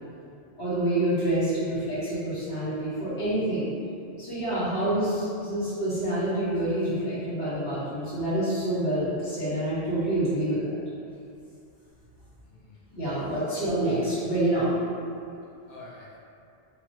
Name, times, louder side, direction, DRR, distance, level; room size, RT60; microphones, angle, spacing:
voice 1, 0.6-3.7 4.2-10.8 12.9-14.8, right 1 dB, 40° left, -14 dB, 1.7 m, -27 dB
voice 2, 12.5-12.8 13.2-13.6 15.7-16.2, left 2 dB, 60° left, -5 dB, 0.5 m, -49 dB
3.3 x 2.9 x 3.0 m, 2.5 s
omnidirectional pair, 1.2 m